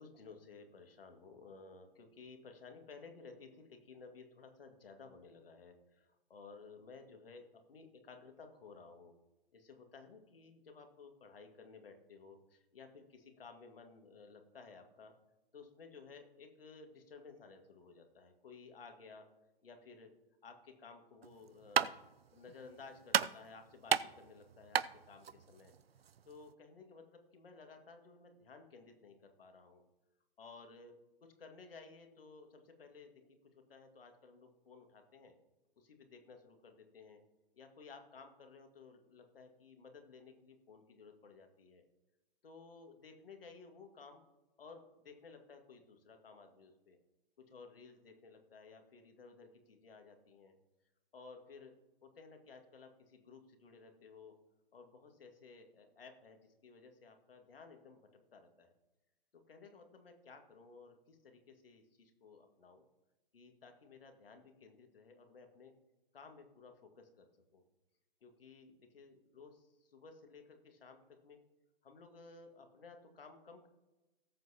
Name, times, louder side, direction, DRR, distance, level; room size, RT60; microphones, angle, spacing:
voice 1, 0.0-9.1 9.5-15.1 15.5-19.3 19.6-20.1 20.4-22.0 22.3-25.7 26.3-29.8 30.4-30.9 31.2-33.2 33.5-35.3 35.8-37.2 37.5-41.8 42.4-44.2 44.6-47.0 47.4-50.5 51.1-51.7 52.0-54.3 54.7-58.7 59.3-62.8 63.3-65.7 66.1-67.6 68.2-71.4 71.8-73.7, left 4 dB, 70° left, 5 dB, 2.1 m, -56 dB
sound 1, 21.2-26.5, right 8 dB, 85° right, 0.6 m, -36 dB
18.5 x 7.8 x 2.9 m, 1.0 s
figure-of-eight pair, 120°, 29 cm